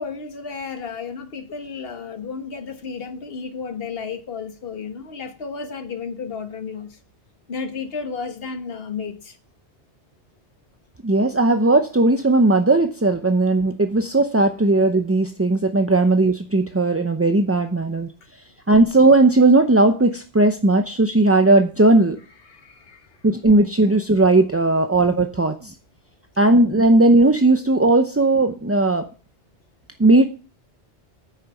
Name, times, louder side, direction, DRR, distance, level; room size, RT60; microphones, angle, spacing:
voice 1, 0.0-7.0 7.5-9.4 22.5-23.1, left 5 dB, 55° left, 1.6 m, -32 dB
voice 2, 11.0-18.1 18.7-22.2 23.2-25.7 26.4-29.1 30.0-30.2, right 2 dB, 15° right, 0.5 m, -17 dB
9.4 x 6.5 x 7.1 m
omnidirectional pair, 1.2 m